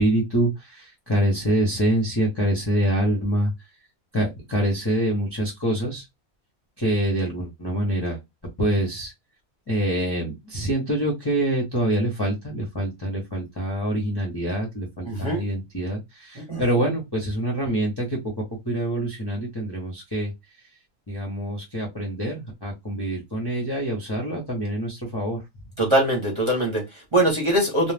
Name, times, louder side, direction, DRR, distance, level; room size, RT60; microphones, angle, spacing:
voice 1, 0.0-3.5 4.1-6.0 6.8-8.2 8.6-9.1 9.7-18.3 18.7-20.3 21.1-25.4, right 1 dB, 20° left, 0.7 m, -25 dB
voice 2, 15.0-15.4 16.3-16.7 25.8-27.9, right 1 dB, 25° right, 0.9 m, -22 dB
2.4 x 2.3 x 3.3 m
omnidirectional pair, 1.5 m